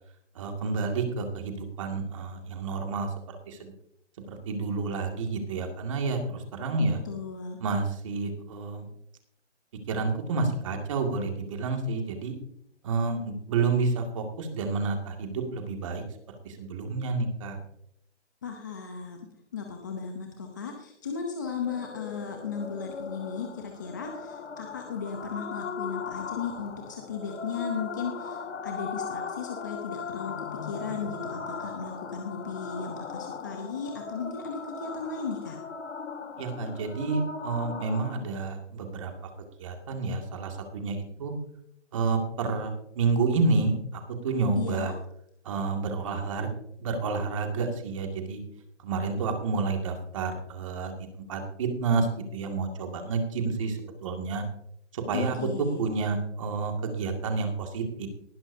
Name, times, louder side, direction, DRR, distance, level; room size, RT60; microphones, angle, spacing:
voice 1, 0.4-3.7 4.3-7.0 7.6-8.9 9.9-12.3 12.8-16.0 16.4-17.6 36.4-39.1 39.6-41.3 41.9-44.9 45.4-46.5 46.8-48.4 48.8-54.4 54.9-55.4 55.8-58.1, right 4 dB, 25° right, 3 dB, 2.1 m, -29 dB
voice 2, 6.8-7.6 18.4-19.2 19.5-30.3 30.6-35.6 44.5-44.9 55.1-55.8, left 6 dB, 15° left, 2 dB, 0.7 m, -36 dB
sound 1, 21.7-38.2, left 5 dB, 75° left, 1.7 m, -38 dB
18.5 x 11.5 x 2.7 m, 0.72 s
hypercardioid pair, 165°, 35 cm